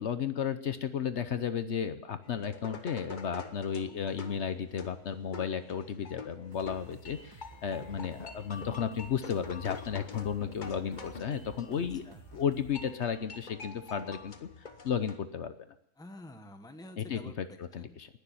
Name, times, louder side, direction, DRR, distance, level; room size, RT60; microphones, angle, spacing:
voice 1, 0.0-12.0 12.3-14.5 14.8-15.5 17.0-18.1, left 7 dB, 60° left, 11 dB, 1.0 m, -33 dB
sound 1, 2.2-15.2, left 4 dB, 40° left, 1.1 m, -47 dB
sound 2, 6.5-12.9, right 3 dB, 20° right, 1.1 m, -54 dB
voice 2, 11.8-12.2 16.0-17.3 17.8-18.2, left 1 dB, 5° left, 7 dB, 0.9 m, -49 dB
19.5 x 6.9 x 10.0 m, 0.81 s
omnidirectional pair, 1.4 m